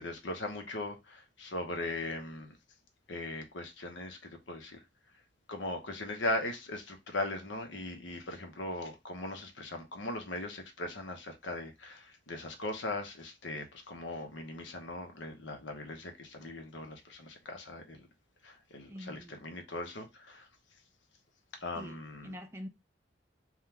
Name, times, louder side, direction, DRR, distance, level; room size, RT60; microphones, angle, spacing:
voice 1, 0.0-2.5 3.1-4.8 5.5-18.1 18.4-20.5 21.6-22.3, left 2 dB, 85° left, 0.9 m, -39 dB
voice 2, 18.9-19.4 21.8-22.7, equal, 15° right, 0.4 m, -45 dB
3.7 x 2.4 x 4.3 m
head